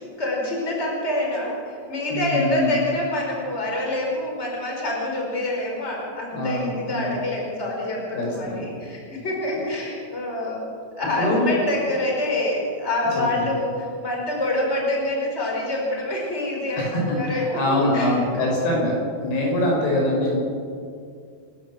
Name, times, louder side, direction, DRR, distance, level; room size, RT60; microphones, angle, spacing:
voice 1, 0.0-10.6 11.0-18.1 19.3-19.7, left 1 dB, 15° left, -1 dB, 4.9 m, -26 dB
voice 2, 2.1-2.7 6.3-7.2 8.1-8.7 11.2-11.6 13.3-13.5 16.8-18.9 19.2-20.4, left 1 dB, 90° left, -2 dB, 7.9 m, -24 dB
28.0 x 12.5 x 7.5 m, 2.3 s
omnidirectional pair, 4.4 m